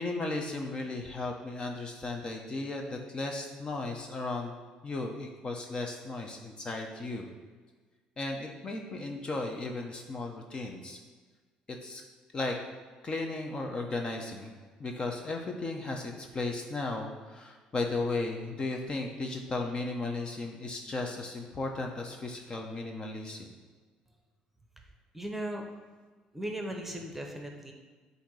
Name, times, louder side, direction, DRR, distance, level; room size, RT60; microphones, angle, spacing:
voice 1, 0.0-4.5 4.8-7.3 8.2-11.0 11.7-12.0 12.3-12.6 13.0-14.5 14.8-23.5, left 2 dB, 35° left, 2 dB, 0.8 m, -35 dB
voice 2, 25.1-25.6 26.3-27.7, right 1 dB, 5° right, 2 dB, 1.0 m, -37 dB
8.2 x 2.8 x 4.7 m, 1.4 s
supercardioid pair, 80°, 3 cm